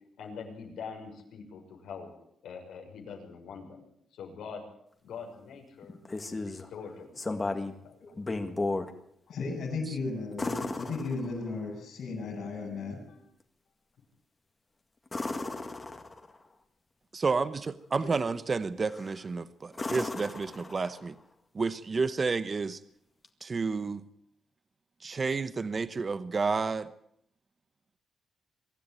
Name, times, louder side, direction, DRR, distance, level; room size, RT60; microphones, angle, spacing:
voice 1, 0.2-2.1 2.4-4.6 5.0-8.0, left 6 dB, 85° left, 1 dB, 6.4 m, -44 dB
sound 1, 5.8-6.7 7.2-7.8 8.2-8.9 10.4-11.6 15.1-16.4 18.8-19.2 19.7-21.1 23.2-23.3, left 2 dB, 20° left, 1.9 m, -35 dB
voice 2, 9.3-13.2 18.0-18.2, left 3 dB, 65° left, -5 dB, 7.9 m, -35 dB
voice 3, 17.1-21.1 21.5-22.8 23.4-24.0 25.0-26.9, right 4 dB, 30° right, 13 dB, 0.9 m, -30 dB
24.0 x 13.0 x 9.4 m, 0.71 s
cardioid pair, 145°, 0 cm